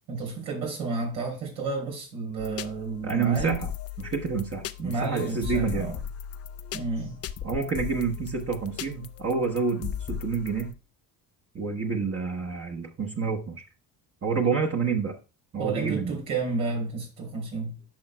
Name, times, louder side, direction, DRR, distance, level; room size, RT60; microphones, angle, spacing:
voice 1, 0.1-3.6 4.8-6.0 6.7-7.2 15.6-17.8, right 4 dB, 85° right, 3.8 m, -31 dB
sound 1, 2.4-10.7, left 9 dB, 35° left, 0.5 m, -37 dB
voice 2, 3.0-3.7 4.0-5.9 7.4-10.7 11.5-13.6 14.2-15.2 15.5-16.2, right 5 dB, 30° right, 1.1 m, -28 dB
10.5 x 5.6 x 2.2 m
supercardioid pair, 75°, 45 cm